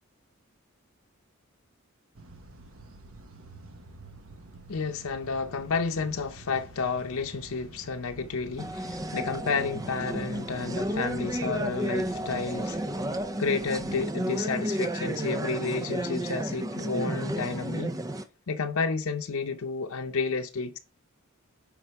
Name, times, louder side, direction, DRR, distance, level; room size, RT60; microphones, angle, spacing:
sound 1, 2.1-14.1, right 3 dB, 75° right, 1.2 m, -49 dB
voice 1, 4.7-12.8 13.4-18.0 18.5-20.8, left 4 dB, 90° left, 0.7 m, -31 dB
sound 2, 8.6-18.2, right 1 dB, 15° right, 0.5 m, -32 dB
9.9 x 3.8 x 4.6 m
head